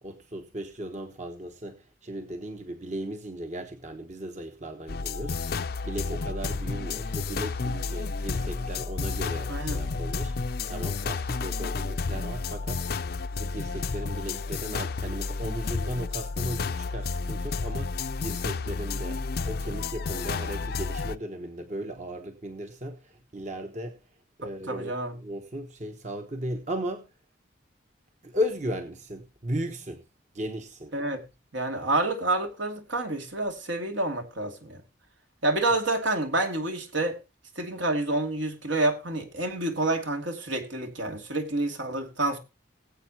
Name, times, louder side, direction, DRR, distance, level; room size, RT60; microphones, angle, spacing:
voice 1, 0.0-24.1 24.4-27.1 28.2-30.0 30.3-30.9, equal, 35° right, 1.1 m, -36 dB
sound 1, 4.9-21.2, left 4 dB, 50° left, 0.5 m, -31 dB
voice 2, 9.5-9.8 24.7-25.1 30.9-31.2 31.5-34.8 35.4-37.2 37.6-42.4, right 2 dB, 75° right, 2.5 m, -28 dB
20.0 x 8.2 x 3.0 m
head